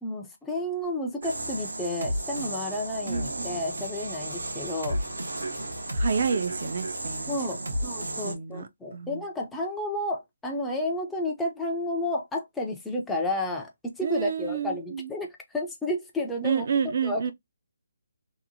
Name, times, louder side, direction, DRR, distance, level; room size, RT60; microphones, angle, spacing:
voice 1, 0.0-5.0 7.3-16.7 17.0-17.3, left 1 dB, 5° left, 0.5 m, -31 dB
sound 1, 1.2-8.3, right 1 dB, 90° right, 0.8 m, -33 dB
voice 2, 3.1-3.6 5.9-7.7 8.2-9.2 14.0-15.1 16.4-17.3, right 6 dB, 50° right, 0.4 m, -30 dB
2.8 x 2.1 x 2.6 m
figure-of-eight pair, 155°, 0 cm